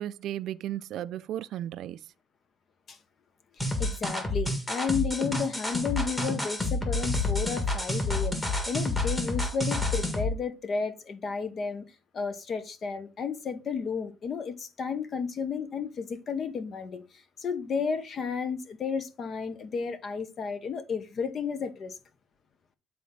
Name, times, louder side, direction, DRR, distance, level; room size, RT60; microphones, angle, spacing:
voice 1, 0.0-2.0, right 12 dB, 70° right, 0.4 m, -35 dB
voice 2, 3.6-11.8 12.1-17.0 17.4-21.9, left 5 dB, 45° left, 0.8 m, -32 dB
sound 1, 3.6-10.3, left 2 dB, 15° left, 1.6 m, -29 dB
8.3 x 4.3 x 3.7 m
cardioid pair, 145°, 0 cm